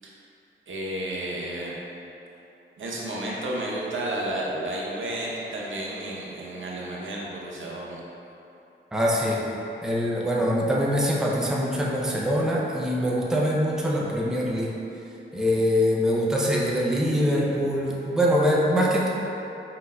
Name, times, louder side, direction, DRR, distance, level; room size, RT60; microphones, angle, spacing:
voice 1, 0.7-1.7 2.8-8.0, right 1 dB, 70° right, -4 dB, 0.7 m, -32 dB
voice 2, 8.9-9.5 9.8-14.8 15.3-19.1, equal, 5° right, -4 dB, 0.5 m, -23 dB
4.4 x 3.9 x 2.2 m, 2.9 s
wide cardioid pair, 85°, 21 cm